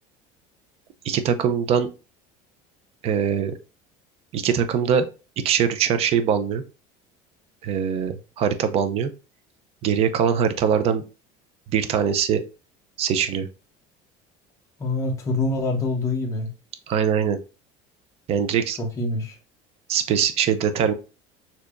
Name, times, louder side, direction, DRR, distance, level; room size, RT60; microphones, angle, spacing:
voice 1, 1.0-1.9 3.0-3.5 4.3-5.0 5.4-6.6 7.6-9.1 9.8-11.0 11.7-12.4 13.0-13.5 16.9-17.4 18.3-18.8 19.9-20.9, right 7 dB, 40° right, 0.5 m, -22 dB
voice 2, 14.8-16.5 18.8-19.4, left 2 dB, 20° left, 0.9 m, -25 dB
6.6 x 2.8 x 2.5 m
cardioid pair, 160°, 16 cm